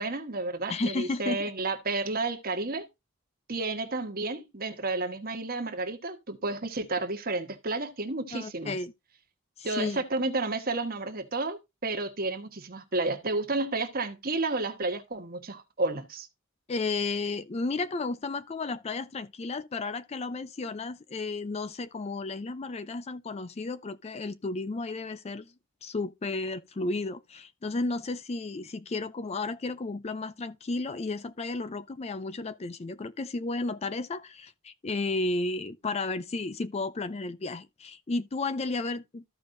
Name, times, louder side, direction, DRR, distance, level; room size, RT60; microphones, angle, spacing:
voice 1, 0.0-2.9 3.5-8.8 9.6-16.3, right 2 dB, 45° right, 1.3 m, -31 dB
voice 2, 0.7-1.5 8.3-8.9 9.6-10.0 16.7-25.5 25.8-39.2, left 3 dB, 30° left, 0.4 m, -33 dB
14.0 x 5.2 x 2.6 m
head